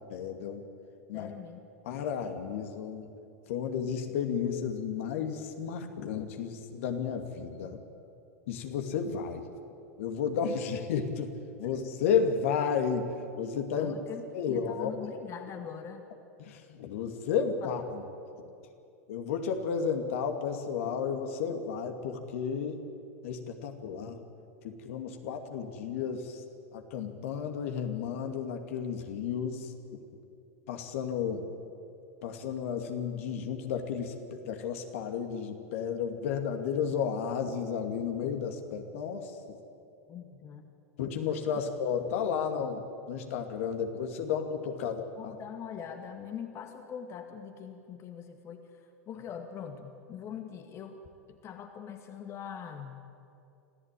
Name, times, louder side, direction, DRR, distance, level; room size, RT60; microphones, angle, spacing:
voice 1, 0.1-0.6 1.1-1.3 1.9-3.1 3.5-7.8 8.5-9.4 10.0-11.3 11.6-13.1 13.4-13.9 14.3-14.9 16.4-18.0 19.1-22.8 23.2-24.2 24.6-26.4 26.7-29.7 30.7-31.5 32.2-39.6 41.0-45.3, left 7 dB, 65° left, 5 dB, 2.4 m, -32 dB
voice 2, 1.1-1.6 13.7-16.1 17.6-17.8 40.1-40.7 45.2-51.0 51.3-53.0, left 8 dB, 35° left, 5 dB, 2.0 m, -42 dB
26.0 x 15.5 x 9.2 m, 2.7 s
hypercardioid pair, 95°, 8 cm